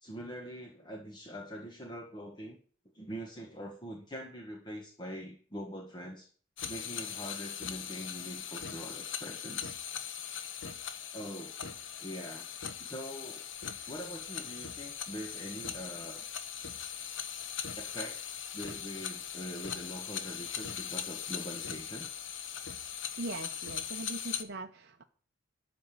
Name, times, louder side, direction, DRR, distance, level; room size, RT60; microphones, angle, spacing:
voice 1, 0.0-2.6 2.9-6.3 6.7-9.7 11.1-11.6 12.0-12.5 12.8-13.5 13.9-16.2 17.8-22.1, equal, 20° left, 1.5 m, -43 dB
sound 1, 6.6-24.4, left 8 dB, 65° left, 1.1 m, -40 dB
voice 2, 23.1-25.0, right 2 dB, 50° right, 0.7 m, -41 dB
12.0 x 5.3 x 7.6 m
head